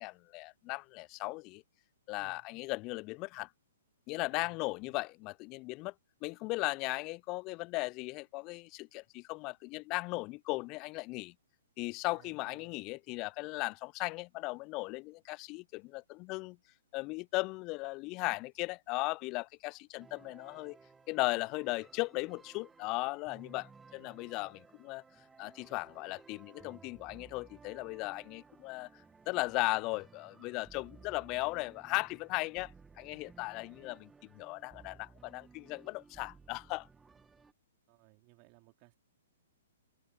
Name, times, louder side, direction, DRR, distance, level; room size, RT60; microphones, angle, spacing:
voice 1, 0.0-1.6 2.1-3.5 4.1-5.9 6.2-11.3 11.8-16.6 16.9-20.8 21.1-25.0 25.4-28.9 29.3-36.9, left 24 dB, 30° left, 0.5 m, -37 dB
voice 2, 12.1-12.8 24.1-24.2 37.9-39.0, right 36 dB, 35° right, 4.0 m, -62 dB
sound 1, 20.0-37.5, right 4 dB, 10° right, 2.1 m, -58 dB
figure-of-eight pair, 120°, 0 cm